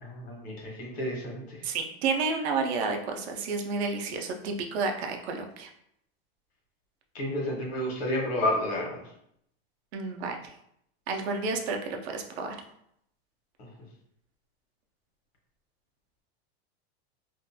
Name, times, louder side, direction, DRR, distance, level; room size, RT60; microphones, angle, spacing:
voice 1, 0.0-1.6 7.1-9.0, left 1 dB, 75° left, -1 dB, 1.1 m, -30 dB
voice 2, 1.6-5.7 9.9-10.4 11.1-12.6, right 4 dB, 85° right, 3 dB, 0.6 m, -30 dB
2.6 x 2.2 x 2.6 m, 0.73 s
supercardioid pair, 175°, 31 cm